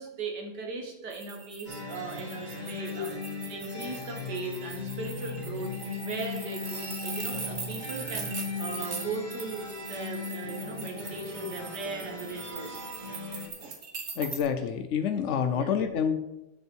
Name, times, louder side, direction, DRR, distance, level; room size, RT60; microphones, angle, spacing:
voice 1, 0.0-3.2 3.5-5.7 6.0-12.8 15.5-15.7, right 4 dB, 65° right, 2 dB, 1.9 m, -38 dB
sound 1, 1.1-14.4, right 5 dB, 45° right, 1.3 m, -41 dB
sound 2, 1.7-13.5, left 4 dB, 25° right, 2.1 m, -38 dB
voice 2, 14.2-16.2, left 7 dB, 90° left, 7 dB, 0.6 m, -28 dB
8.3 x 6.8 x 4.5 m, 0.95 s
omnidirectional pair, 2.0 m